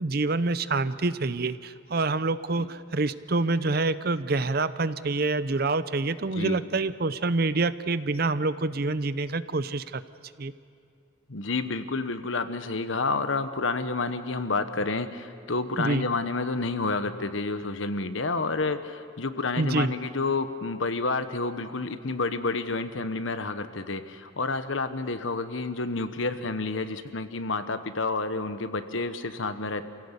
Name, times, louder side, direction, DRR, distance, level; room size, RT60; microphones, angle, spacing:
voice 1, 0.0-10.0 10.4-10.5 15.8-16.0 19.6-19.9, right 3 dB, 50° right, 14 dB, 0.7 m, -27 dB
voice 2, 11.3-29.8, left 3 dB, 75° left, 10 dB, 1.2 m, -29 dB
28.0 x 17.0 x 8.3 m, 2.4 s
head